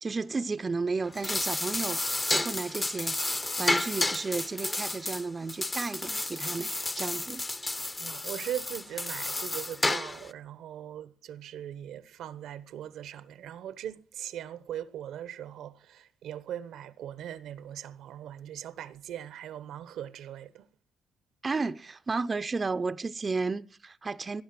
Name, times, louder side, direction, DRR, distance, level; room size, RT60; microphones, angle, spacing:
voice 1, 0.0-2.0 2.3-7.4 21.4-24.4, right 4 dB, 30° right, 0.6 m, -33 dB
sound 1, 1.0-10.3, left 2 dB, 20° left, 0.9 m, -31 dB
voice 2, 8.0-20.7, right 10 dB, 80° right, 1.0 m, -40 dB
18.0 x 10.5 x 5.9 m
cardioid pair, 90°, 0 cm